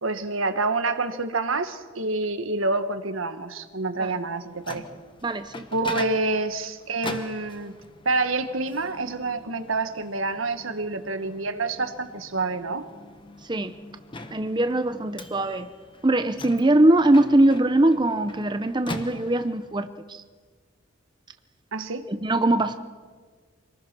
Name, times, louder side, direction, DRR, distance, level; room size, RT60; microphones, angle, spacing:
voice 1, 0.0-4.8 5.7-7.7 8.0-12.9 21.7-22.1, right 3 dB, 80° right, 9 dB, 1.4 m, -27 dB
Microwave oven, 4.3-19.7, left 2 dB, 25° left, 1.1 m, -42 dB
voice 2, 5.2-5.7 13.4-13.8 14.3-15.7 16.0-20.2 22.1-22.7, right 1 dB, 20° right, 9 dB, 0.7 m, -21 dB
25.5 x 19.5 x 6.1 m, 1.5 s
head